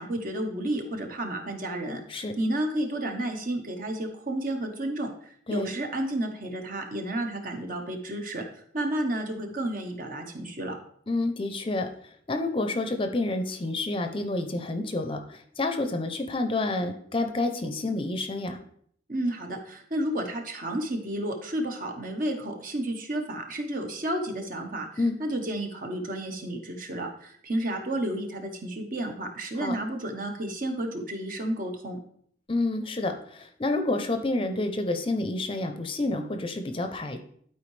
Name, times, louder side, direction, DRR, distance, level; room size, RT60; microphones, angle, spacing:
voice 1, 0.0-8.4 8.7-10.8 19.1-32.0, right 1 dB, 50° right, 3 dB, 1.2 m, -31 dB
voice 2, 11.1-11.9 12.3-18.6 25.0-25.2 29.6-29.7 32.5-37.2, left 2 dB, 30° left, 6 dB, 0.6 m, -29 dB
11.5 x 4.6 x 3.3 m, 0.63 s
head